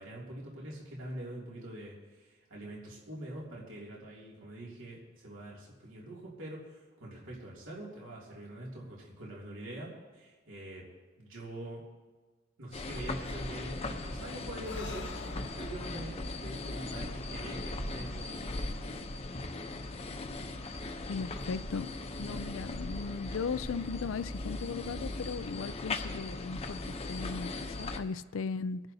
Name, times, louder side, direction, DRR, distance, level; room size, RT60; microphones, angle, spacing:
voice 1, 0.0-10.8 11.2-11.8 12.6-19.0, right 1 dB, 75° right, 2.7 m, -44 dB
sound 1, 12.7-28.0, left 2 dB, 30° left, 0.8 m, -39 dB
Breathing, 14.5-18.1, left 3 dB, 60° left, 0.9 m, -47 dB
voice 2, 21.1-21.9 22.2-26.8 27.1-28.8, left 5 dB, 75° left, 0.4 m, -37 dB
26.5 x 10.5 x 2.8 m
head